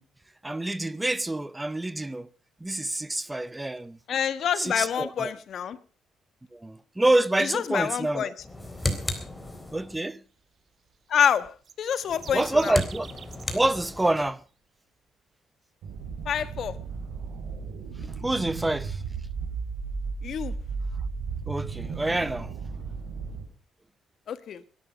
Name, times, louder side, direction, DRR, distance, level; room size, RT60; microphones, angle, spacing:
voice 1, 0.4-2.3 2.6-4.0 4.6-5.3 6.5-8.3 9.7-10.2 12.3-13.1 13.5-14.4 18.2-19.0 21.5-22.5, right 2 dB, 15° right, 0.7 m, -27 dB
voice 2, 4.1-5.8 7.4-8.3 11.1-12.8 16.2-16.8 20.2-20.5 24.3-24.6, left 8 dB, 65° left, 1.3 m, -27 dB
sound 1, 8.4-10.0 12.0-14.3, left 1 dB, 10° left, 3.8 m, -34 dB
sound 2, 11.6-13.8, right 7 dB, 50° right, 1.5 m, -46 dB
sound 3, 15.8-23.4, right 5 dB, 85° right, 4.9 m, -35 dB
21.5 x 11.5 x 5.1 m
cardioid pair, 90°, 0 cm